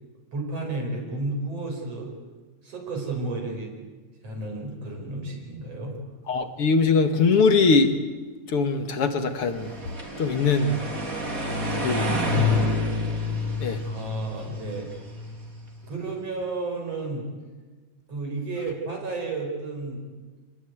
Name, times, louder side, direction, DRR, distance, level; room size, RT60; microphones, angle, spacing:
voice 1, 0.3-2.1 2.6-3.7 4.2-6.0 11.8-12.7 13.9-14.9 15.9-17.3 18.1-20.1, right 2 dB, 55° right, 1 dB, 6.2 m, -32 dB
voice 2, 6.3-7.9 8.5-9.7 10.2-10.8 11.8-12.2 13.6-13.8, left 4 dB, 50° left, 8 dB, 2.3 m, -21 dB
sound 1, 9.4-15.6, left 2 dB, 30° right, 3.5 m, -28 dB
27.5 x 20.0 x 9.5 m, 1.3 s
omnidirectional pair, 3.4 m